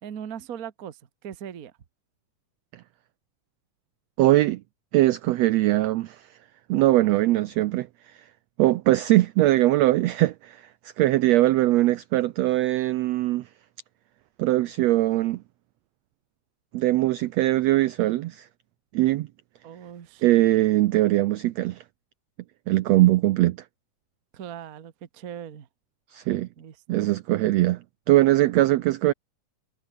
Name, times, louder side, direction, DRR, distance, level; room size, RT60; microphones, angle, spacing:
voice 1, 0.0-1.7 19.6-20.2 24.3-25.7 26.6-27.1, right 9 dB, 60° right, 0.9 m, -39 dB
voice 2, 4.2-4.6 4.9-6.3 6.7-7.9 8.1-8.2 8.6-10.6 11.0-13.5 14.4-15.4 16.7-18.5 18.9-19.3 20.2-21.8 22.7-23.6 26.1-26.5 26.9-29.1, right 16 dB, 85° right, 1.5 m, -21 dB
omnidirectional pair, 3.8 m